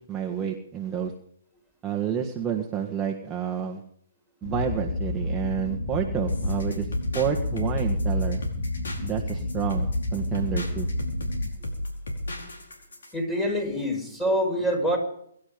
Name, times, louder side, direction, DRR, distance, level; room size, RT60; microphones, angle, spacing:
voice 1, 0.1-1.1 1.8-3.8 4.4-6.9 7.1-8.4 9.0-10.9, right 8 dB, 15° right, 0 dB, 1.7 m, -29 dB
sound 1, 4.4-11.5, left 2 dB, 60° left, 5.2 m, -30 dB
sound 2, 6.3-13.1, left 1 dB, 80° left, 4.8 m, -34 dB
voice 2, 13.1-15.0, equal, 10° left, 3 dB, 5.4 m, -25 dB
23.0 x 11.5 x 5.3 m, 0.69 s
hypercardioid pair, 140°, 0 cm